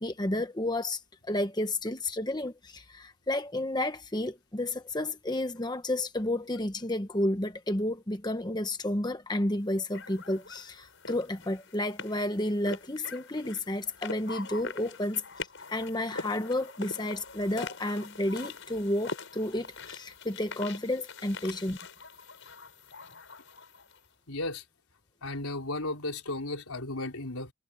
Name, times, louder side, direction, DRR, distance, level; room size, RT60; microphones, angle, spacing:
voice 1, 0.0-15.2 15.7-21.8, left 1 dB, 20° left, 1.0 m, -31 dB
sound 1, 9.9-24.0, left 4 dB, 60° left, 7.8 m, -43 dB
voice 2, 24.3-24.6 25.2-27.5, left 2 dB, 90° left, 4.6 m, -34 dB
head